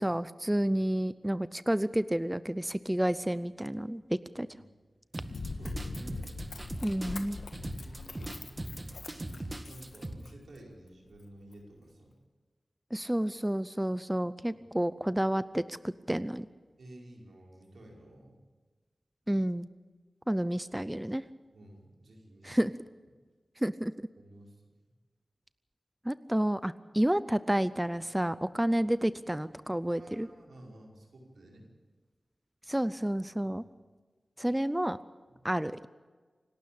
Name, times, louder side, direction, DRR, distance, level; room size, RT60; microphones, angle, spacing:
voice 1, 0.0-4.5 6.8-7.4 12.9-16.5 19.3-19.7 20.3-21.2 22.4-22.7 23.6-23.9 26.0-30.3 32.7-33.6 34.4-35.0 35.4-35.9, right 1 dB, 10° right, 15 dB, 0.6 m, -30 dB
sound 1, 5.1-10.1, right 1 dB, 30° right, 1.7 m, -40 dB
Run, 5.3-10.6 11.1-11.2, left 3 dB, 80° left, 1.6 m, -42 dB
voice 2, 5.5-6.3 7.8-8.5 9.6-12.2 14.5-14.7 16.8-18.4 21.5-22.6 24.2-24.6 30.0-31.7 33.4-33.6 35.3-35.5, right 1 dB, 90° right, -1 dB, 5.2 m, -52 dB
27.5 x 12.5 x 8.7 m, 1.4 s
wide cardioid pair, 70°, 0 cm